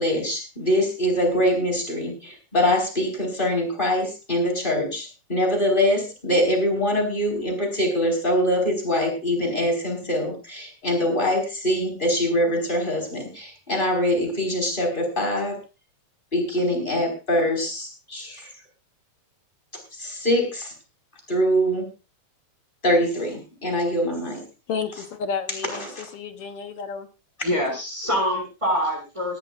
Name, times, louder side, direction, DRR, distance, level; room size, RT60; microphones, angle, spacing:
voice 1, 0.0-15.6 16.3-18.5 20.0-20.7 21.3-21.9 22.8-24.4 25.8-26.1, equal, 15° left, 2 dB, 5.1 m, -23 dB
voice 2, 24.7-27.1, left 6 dB, 60° left, 8 dB, 1.8 m, -31 dB
voice 3, 27.4-29.4, equal, 10° right, -2 dB, 6.5 m, -25 dB
19.5 x 14.0 x 2.5 m, 0.30 s
omnidirectional pair, 3.4 m